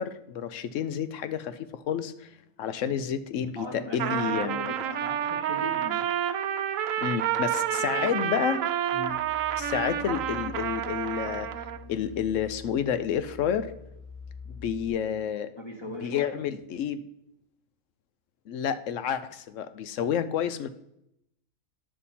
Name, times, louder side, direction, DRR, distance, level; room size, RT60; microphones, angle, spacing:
voice 1, 0.0-2.3 2.6-4.7 7.0-8.6 9.6-11.5 11.9-13.7 14.5-15.5 16.0-17.0 18.5-20.7, left 8 dB, 70° left, 12 dB, 1.0 m, -30 dB
voice 2, 3.5-6.0 7.7-8.1 8.9-9.2 15.5-16.4, equal, 20° left, 0 dB, 1.3 m, -39 dB
Trumpet, 3.9-11.8, right 10 dB, 75° right, 1.0 m, -29 dB
sound 1, 8.9-14.9, left 5 dB, 90° left, 2.4 m, -45 dB
9.9 x 7.2 x 4.2 m, 0.81 s
omnidirectional pair, 1.4 m